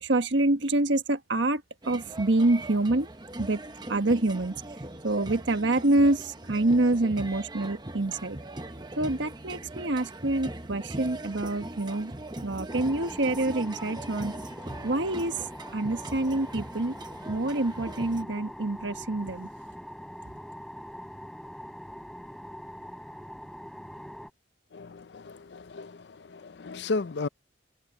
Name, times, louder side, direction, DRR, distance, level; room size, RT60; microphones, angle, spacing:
voice 1, 0.0-1.6 1.9-3.1 3.4-3.6 3.9-4.5 5.0-8.4 9.0-12.1 12.4-14.3 14.8-15.3 15.7-16.9 17.3-19.5, right 2 dB, 85° right, 1.4 m, -26 dB
sound 1, 1.8-18.2, right 2 dB, 25° right, 1.1 m, -40 dB
sound 2, 12.7-24.3, equal, ahead, 6.6 m, -43 dB
voice 2, 24.7-27.3, left 3 dB, 65° left, 0.5 m, -34 dB
head